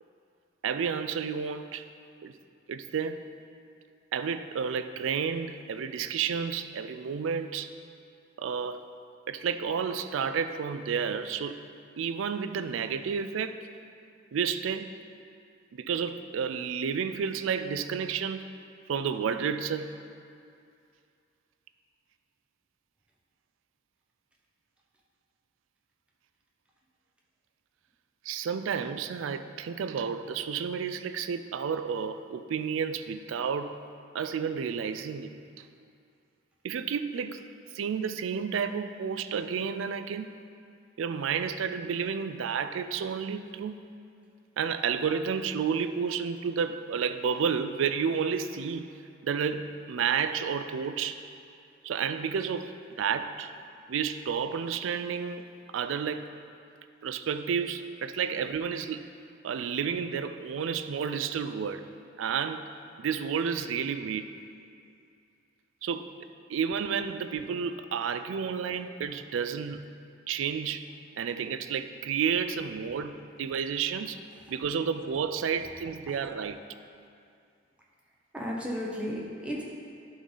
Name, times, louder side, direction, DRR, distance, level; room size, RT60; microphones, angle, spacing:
voice 1, 0.6-1.9 2.2-2.3 2.7-3.3 4.1-7.7 8.4-8.9 9.3-11.6 12.0-13.6 14.3-14.9 15.7-18.5 18.9-20.0 28.2-33.8 34.1-35.6 36.6-37.4 37.7-40.4 41.0-43.8 44.6-48.9 49.2-51.2 51.8-53.5 53.9-56.3 57.0-59.0 59.4-61.9 62.2-62.7 63.0-64.3 65.8-69.9 70.3-70.9 71.2-74.2 74.5-76.6, right 6 dB, 85° right, 10 dB, 0.4 m, -31 dB
voice 2, 78.3-79.6, equal, 5° right, -3 dB, 0.9 m, -34 dB
11.0 x 3.9 x 3.9 m, 2.4 s
head